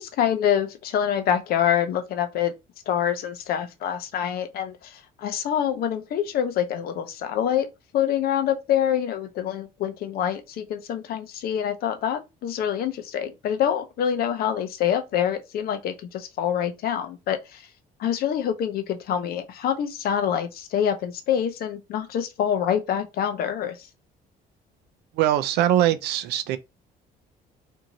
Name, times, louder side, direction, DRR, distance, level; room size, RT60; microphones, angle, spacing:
voice 1, 0.0-2.5 2.9-7.7 7.9-17.7 18.0-23.9, left 9 dB, 65° left, 0.6 m, -26 dB
voice 2, 25.1-26.6, right 12 dB, 80° right, 0.4 m, -22 dB
2.7 x 2.5 x 2.9 m
cardioid pair, 110°, 17 cm